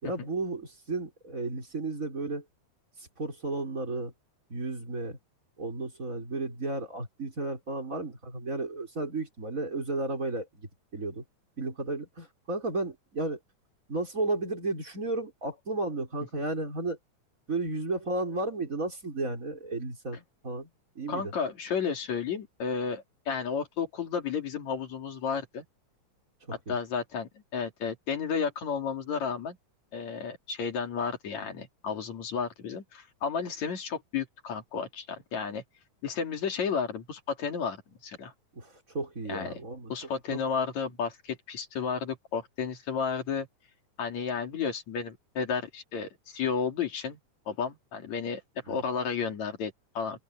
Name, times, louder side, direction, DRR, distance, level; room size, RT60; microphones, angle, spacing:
voice 1, 0.0-2.4 3.2-4.1 4.5-5.2 5.6-11.2 11.6-13.4 13.9-17.0 17.5-20.7 20.9-21.3 26.5-26.8 38.5-39.9 40.3-40.4 48.7-48.8, right 2 dB, 25° right, 5.0 m, -33 dB
voice 2, 21.1-25.6 26.7-29.6 29.9-35.6 36.0-38.3 39.3-39.5 39.9-43.5 44.0-47.2 47.5-48.4 48.7-50.2, left 6 dB, 65° left, 4.0 m, -32 dB
open air
omnidirectional pair, 3.5 m